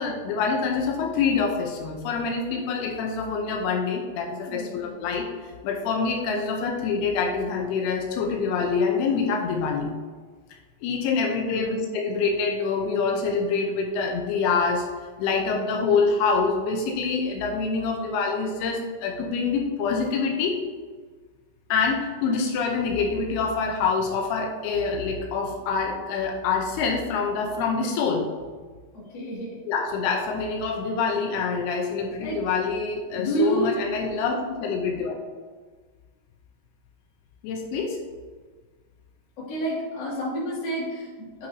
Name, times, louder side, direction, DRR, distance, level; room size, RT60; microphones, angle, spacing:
voice 1, 0.0-9.9 10.8-14.9 15.2-20.6 21.7-28.3 29.7-35.1 37.4-38.0, left 5 dB, 85° left, 1 dB, 2.6 m, -26 dB
voice 2, 4.5-5.0 11.4-11.8 28.9-29.6 32.2-32.4 33.1-33.8 39.4-41.5, right 1 dB, 35° left, -6 dB, 2.1 m, -29 dB
9.2 x 5.7 x 2.7 m, 1.5 s
omnidirectional pair, 4.7 m